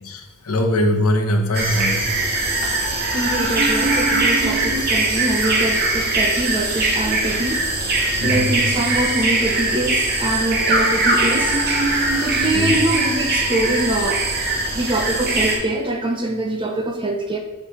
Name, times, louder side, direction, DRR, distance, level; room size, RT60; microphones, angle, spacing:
voice 1, 0.0-2.1 8.2-8.5 12.4-12.8, left 1 dB, 85° left, 3 dB, 0.9 m, -21 dB
sound 1, 1.5-15.6, right 2 dB, 45° right, 1.1 m, -21 dB
voice 2, 3.1-7.6 8.2-11.8 12.2-14.2 14.7-17.4, right 1 dB, 20° right, 3 dB, 0.5 m, -24 dB
8.3 x 3.2 x 4.2 m, 1.2 s
head